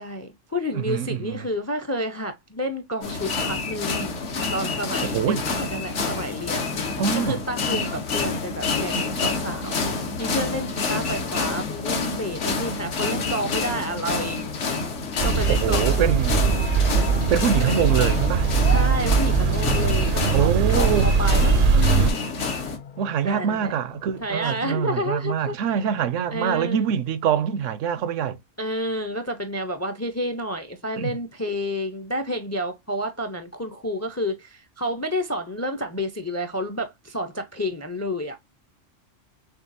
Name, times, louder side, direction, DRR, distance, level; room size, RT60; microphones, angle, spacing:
voice 1, 0.0-4.2 4.5-9.8 10.2-14.5 15.2-16.1 17.7-17.8 18.6-22.2 23.2-23.7 24.2-25.8 26.3-26.9 28.6-38.4, equal, 20° left, 0.4 m, -30 dB
voice 2, 0.7-1.5 5.0-5.5 7.0-7.4 15.5-16.4 17.3-18.5 20.3-21.1 23.0-28.4 31.0-31.2, right 8 dB, 80° right, 0.9 m, -24 dB
sound 1, 3.0-22.8, left 4 dB, 70° left, 1.3 m, -28 dB
sound 2, 15.2-22.1, right 5 dB, 55° right, 0.6 m, -21 dB
sound 3, 15.8-27.2, left 8 dB, 90° left, 0.3 m, -37 dB
6.3 x 2.4 x 2.6 m
omnidirectional pair, 1.3 m